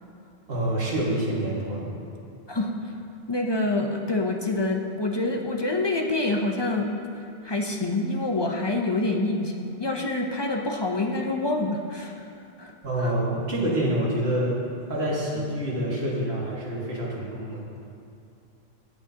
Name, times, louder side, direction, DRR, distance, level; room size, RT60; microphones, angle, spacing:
voice 1, 0.5-1.9 12.8-14.6 14.9-17.7, right 1 dB, 65° right, -5 dB, 2.1 m, -27 dB
voice 2, 3.3-6.9 7.4-12.3 12.6-12.7 13.0-13.1, left 2 dB, 30° left, 1 dB, 0.6 m, -26 dB
17.0 x 6.2 x 2.8 m, 2.6 s
omnidirectional pair, 1.1 m